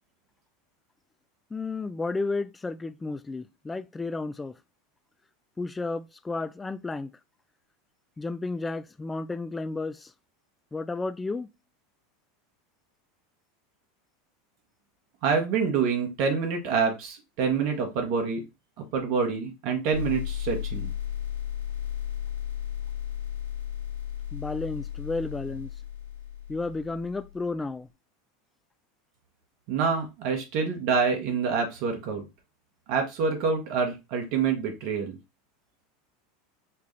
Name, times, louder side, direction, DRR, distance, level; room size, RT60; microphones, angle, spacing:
voice 1, 1.5-4.6 5.6-7.1 8.2-10.1 10.7-11.5 24.3-25.7 26.5-27.9, left 3 dB, 15° left, 0.3 m, -32 dB
voice 2, 15.2-18.4 18.8-20.9 29.7-32.3 32.9-35.2, right 5 dB, 60° right, 1.2 m, -27 dB
sound 1, 19.9-27.4, left 10 dB, 90° left, 1.0 m, -34 dB
4.5 x 2.4 x 3.1 m
hypercardioid pair, 90°, 0 cm